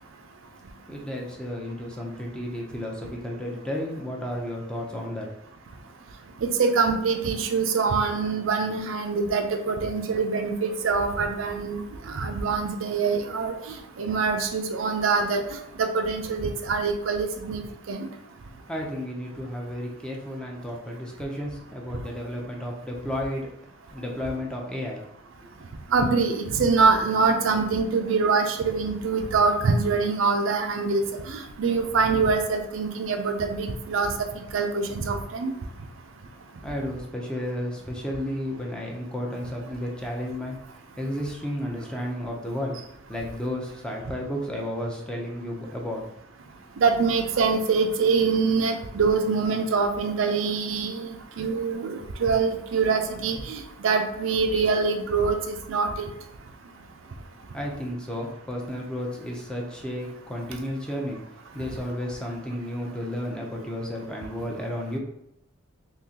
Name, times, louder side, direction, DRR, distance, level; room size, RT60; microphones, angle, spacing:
voice 1, 0.9-5.3 18.7-23.5 23.9-25.0 36.6-40.6 41.0-42.8 43.1-46.0 57.5-61.2 61.5-65.0, left 1 dB, 5° left, -1 dB, 0.6 m, -32 dB
voice 2, 6.4-15.4 15.8-18.1 25.9-34.1 34.5-35.5 46.8-56.1, right 4 dB, 75° right, 5 dB, 0.5 m, -24 dB
3.7 x 2.9 x 2.8 m, 0.80 s
head